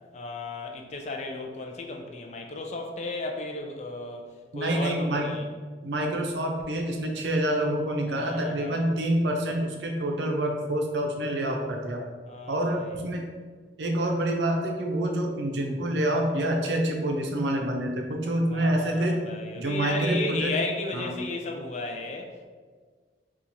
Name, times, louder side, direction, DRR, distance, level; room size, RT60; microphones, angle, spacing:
voice 1, 0.1-5.4 8.1-8.9 12.3-12.9 18.5-22.5, left 2 dB, 40° left, 2 dB, 0.4 m, -34 dB
voice 2, 4.5-5.3 5.8-12.0 12.5-13.2 13.8-19.2 19.5-20.5 20.9-21.1, right 1 dB, 75° right, 2 dB, 0.5 m, -27 dB
4.4 x 2.4 x 2.6 m, 1.5 s
head